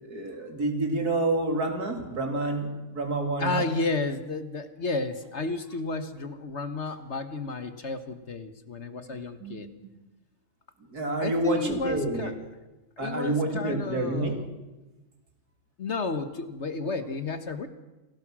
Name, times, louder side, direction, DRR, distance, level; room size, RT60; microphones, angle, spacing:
voice 1, 0.0-3.6 9.4-9.6 10.9-12.3 13.0-14.3, right 2 dB, 75° right, 4 dB, 3.7 m, -28 dB
voice 2, 3.4-9.7 11.2-12.4 13.0-14.5 15.8-17.7, left 3 dB, 50° left, 10 dB, 1.5 m, -32 dB
27.5 x 19.0 x 6.2 m, 1.1 s
omnidirectional pair, 1.7 m